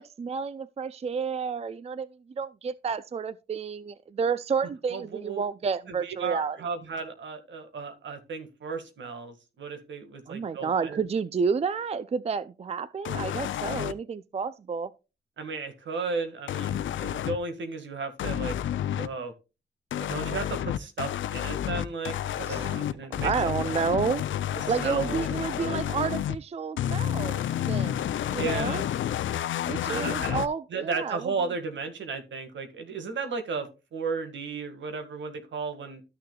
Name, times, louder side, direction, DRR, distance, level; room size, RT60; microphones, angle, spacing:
voice 1, 0.0-2.1 2.4-6.6 10.3-14.9 22.5-22.8 23.2-24.2 24.7-28.0 28.3-28.8 29.7-31.3, right 5 dB, 35° right, 0.4 m, -30 dB
voice 2, 4.9-5.4 5.9-11.0 15.4-18.6 18.9-19.3 20.0-23.3 24.5-25.8 28.4-28.8 29.9-30.4 30.7-36.0, right 4 dB, 75° right, 1.8 m, -35 dB
sound 1, 13.1-13.9 16.5-17.4 18.2-19.1 19.9-26.4 26.8-30.5, left 11 dB, 90° left, 0.5 m, -30 dB
13.0 x 6.5 x 2.3 m
cardioid pair, 85°, 19 cm